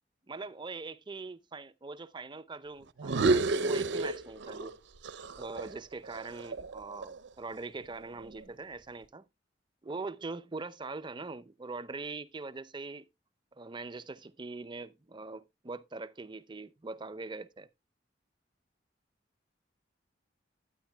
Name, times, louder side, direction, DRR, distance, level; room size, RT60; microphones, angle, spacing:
voice 1, 0.3-4.8 5.4-9.2 9.8-13.1 13.5-17.7, right 3 dB, 25° right, 0.5 m, -42 dB
sound 1, 3.0-4.7 5.0-7.3, right 3 dB, 65° right, 0.6 m, -30 dB
11.5 x 9.5 x 2.2 m
head